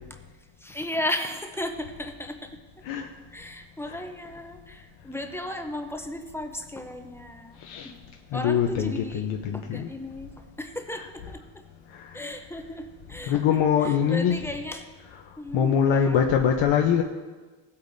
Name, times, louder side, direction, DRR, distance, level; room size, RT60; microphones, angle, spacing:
voice 1, 0.6-2.5 3.0-3.1 3.3-7.6 7.8-8.0 8.3-11.6 12.1-14.9 15.4-16.2, left 1 dB, 5° left, 5 dB, 0.5 m, -35 dB
voice 2, 7.6-7.9 8.3-9.9 11.9-12.2 13.3-14.4 15.5-17.0, left 8 dB, 85° left, 2 dB, 0.8 m, -23 dB
16.0 x 8.6 x 2.6 m, 1.3 s
cardioid pair, 155°, 46 cm